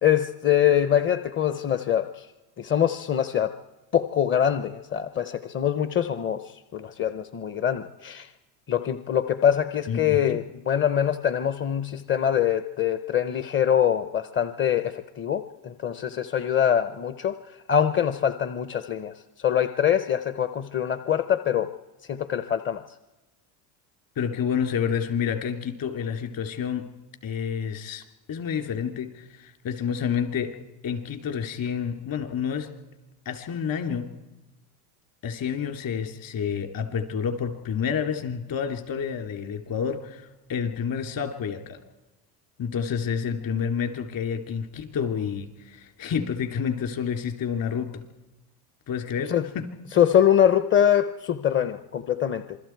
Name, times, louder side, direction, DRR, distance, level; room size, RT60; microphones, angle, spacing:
voice 1, 0.0-2.3 2.6-3.6 3.9-8.3 8.7-21.7 22.1-22.9 49.3-49.5 49.9-52.6, left 9 dB, 25° left, 11 dB, 0.8 m, -24 dB
voice 2, 9.9-10.4 24.2-26.9 27.2-30.6 30.8-32.7 33.2-34.1 35.2-41.8 42.6-48.0 48.9-49.7, left 7 dB, 40° left, 6 dB, 3.2 m, -29 dB
27.5 x 22.0 x 4.7 m, 1.1 s
supercardioid pair, 115°, 49 cm